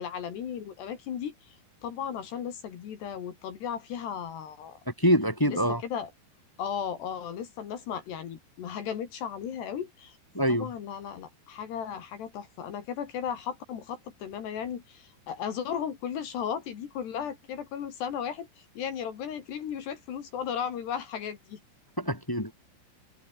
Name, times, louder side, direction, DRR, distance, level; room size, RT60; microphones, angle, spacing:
voice 1, 0.0-4.8 5.5-6.1 6.6-10.2 10.5-21.6, left 8 dB, 65° left, 4.5 m, -35 dB
voice 2, 5.0-5.8 10.3-10.7 22.0-22.5, equal, 10° left, 1.3 m, -25 dB
omnidirectional pair, 5.4 m